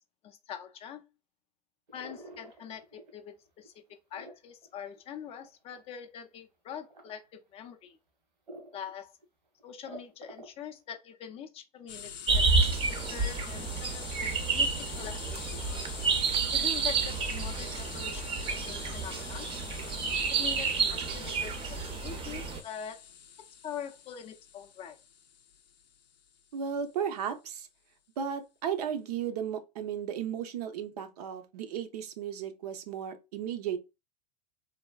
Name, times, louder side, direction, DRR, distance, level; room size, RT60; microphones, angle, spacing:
voice 1, 0.2-1.0 1.9-3.7 4.1-8.0 8.7-9.1 9.6-12.5 12.9-15.6 16.5-18.4 18.7-19.5 20.3-23.0 23.6-25.0, left 8 dB, 30° left, 0.4 m, -43 dB
sound 1, 1.9-3.3 3.6-5.9 6.7-7.2 7.7-7.8 8.5-8.9 9.2-9.3 9.6-10.7, right 1 dB, 85° right, 1.3 m, -48 dB
sound 2, 11.9-26.4, left 8 dB, 90° left, 0.4 m, -45 dB
sound 3, 12.3-22.6, right 4 dB, 25° right, 0.5 m, -30 dB
voice 2, 26.5-27.7 28.2-33.8, right 8 dB, 70° right, 0.6 m, -35 dB
3.3 x 2.1 x 2.3 m
hypercardioid pair, 100°, 21 cm